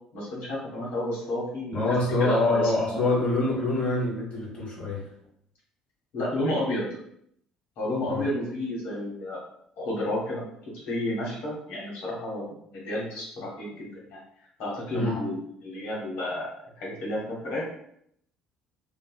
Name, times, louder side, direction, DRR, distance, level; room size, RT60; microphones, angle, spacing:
voice 1, 0.1-3.0 6.1-6.9 7.8-9.4 9.8-14.2 14.6-16.5 16.8-17.6, left 1 dB, 60° left, -5 dB, 1.3 m, -31 dB
voice 2, 1.7-5.1 8.1-8.3 14.9-15.2, left 2 dB, 40° left, -5 dB, 1.4 m, -25 dB
3.0 x 2.9 x 2.3 m, 0.70 s
figure-of-eight pair, 50°, 3 cm